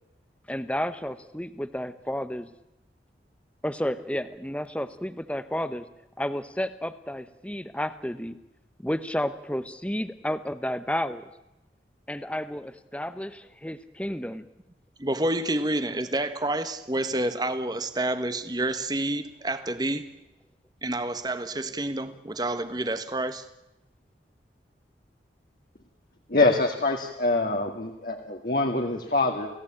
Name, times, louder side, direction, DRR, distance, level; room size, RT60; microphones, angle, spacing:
voice 1, 0.5-2.5 3.6-5.8 6.2-8.4 8.8-11.2 12.1-14.5, equal, 5° left, 1.0 m, -31 dB
voice 2, 15.0-20.1 20.8-23.4, right 1 dB, 20° right, 1.4 m, -28 dB
voice 3, 26.3-29.5, left 2 dB, 50° left, 2.1 m, -24 dB
29.0 x 17.0 x 8.8 m
head